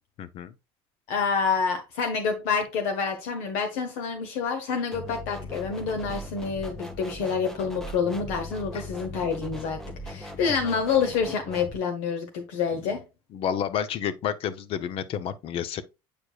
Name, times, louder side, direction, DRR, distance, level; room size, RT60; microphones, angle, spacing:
voice 1, 0.2-0.5 8.7-8.8 13.3-15.8, left 9 dB, 50° left, 0.8 m, -30 dB
voice 2, 1.1-13.0, left 5 dB, 70° left, 1.2 m, -28 dB
sound 1, 4.9-11.8, left 1 dB, 5° left, 1.0 m, -39 dB
8.7 x 4.7 x 2.4 m
supercardioid pair, 115°, 12 cm